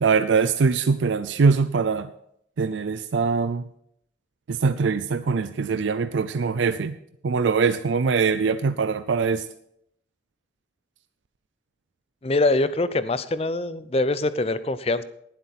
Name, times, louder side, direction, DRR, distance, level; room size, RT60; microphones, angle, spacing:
voice 1, 0.0-2.1 2.6-3.6 4.5-7.0 7.2-9.4, right 5 dB, 85° right, 12 dB, 0.5 m, -22 dB
voice 2, 12.2-15.0, left 2 dB, 30° left, 14 dB, 0.5 m, -23 dB
18.0 x 7.9 x 4.2 m, 0.72 s
head